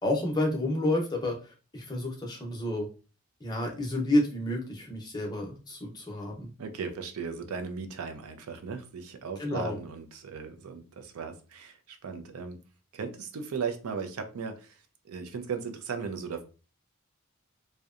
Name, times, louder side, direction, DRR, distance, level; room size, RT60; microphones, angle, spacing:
voice 1, 0.0-2.9 3.4-6.5 9.4-9.8, left 1 dB, 20° left, 0 dB, 0.6 m, -30 dB
voice 2, 6.6-12.6 12.9-16.4, right 5 dB, 80° right, 7 dB, 0.4 m, -37 dB
2.7 x 2.1 x 2.4 m, 0.34 s
head